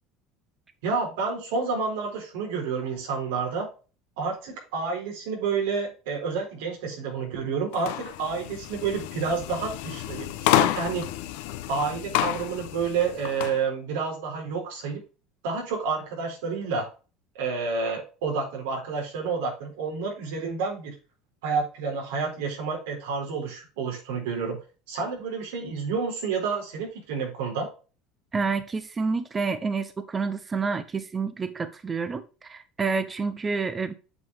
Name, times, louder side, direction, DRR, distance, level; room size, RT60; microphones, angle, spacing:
voice 1, 0.8-3.7 4.2-11.1 11.7-15.0 15.4-16.9 17.3-20.9 21.4-24.6 24.9-27.7, right 5 dB, 90° right, 4.2 m, -29 dB
sound 1, 7.7-13.6, left 14 dB, 80° left, 0.8 m, -29 dB
voice 2, 28.3-33.9, right 4 dB, 20° right, 0.7 m, -29 dB
8.1 x 5.5 x 3.6 m
cardioid pair, 135°, 0 cm